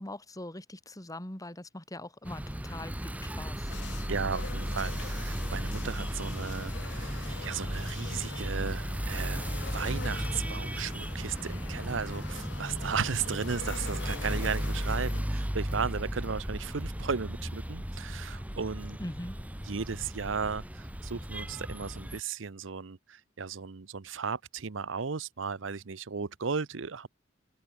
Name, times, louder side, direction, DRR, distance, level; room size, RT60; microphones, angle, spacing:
voice 1, 0.0-3.7 19.0-19.4, left 1 dB, 20° left, 2.7 m, -42 dB
sound 1, 2.2-22.2, equal, 10° right, 1.3 m, -35 dB
sound 2, 3.7-15.2, left 6 dB, 65° left, 0.8 m, -45 dB
voice 2, 4.1-19.0 19.7-27.1, right 5 dB, 80° right, 0.8 m, -35 dB
head